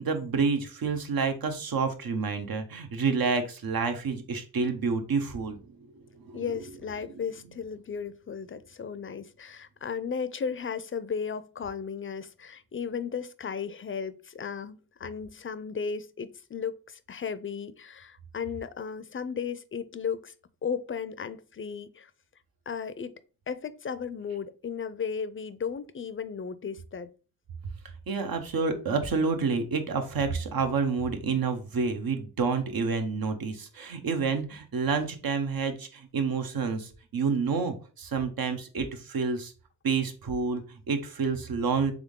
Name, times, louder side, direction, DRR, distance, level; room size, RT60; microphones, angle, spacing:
voice 1, 0.0-5.6 28.1-39.5 39.8-41.9, right 5 dB, 70° right, 0.9 m, -29 dB
voice 2, 6.3-20.3 20.6-22.1 22.7-23.1 23.5-27.1, left 6 dB, 35° left, 0.4 m, -35 dB
3.6 x 3.5 x 3.6 m
cardioid pair, 65°, 37 cm